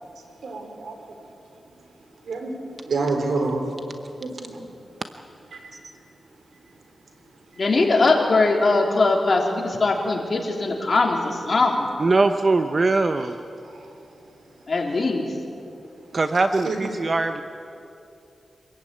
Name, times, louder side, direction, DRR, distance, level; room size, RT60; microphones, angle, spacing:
voice 1, 0.4-1.0 2.2-2.5 2.8-3.6 4.2-4.6 5.5-5.6 13.0-13.2 13.6-13.8 16.6-16.9, right 3 dB, 80° right, 4 dB, 3.8 m, -28 dB
voice 2, 7.6-11.9 14.7-15.3, left 3 dB, 50° left, 0 dB, 3.6 m, -21 dB
voice 3, 12.0-13.4 16.1-17.4, right 3 dB, 45° right, 7 dB, 0.9 m, -21 dB
26.5 x 15.0 x 9.1 m, 2.7 s
cardioid pair, 70°, 0 cm